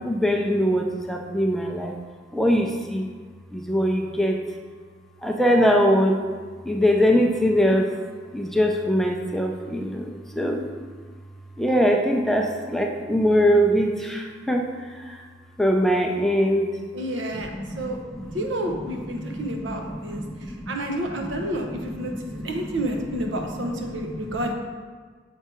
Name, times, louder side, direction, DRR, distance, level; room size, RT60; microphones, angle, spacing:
voice 1, 0.0-1.9 2.3-3.1 3.5-4.4 5.2-6.2 6.6-8.0 8.3-10.7 11.6-15.3 15.6-16.7 17.3-20.7 21.0-24.5, equal, ahead, 1 dB, 0.4 m, -23 dB
voice 2, 16.9-18.0 18.3-20.2 20.7-24.5, right 1 dB, 75° right, 3 dB, 0.9 m, -30 dB
6.9 x 4.5 x 4.5 m, 1.5 s
head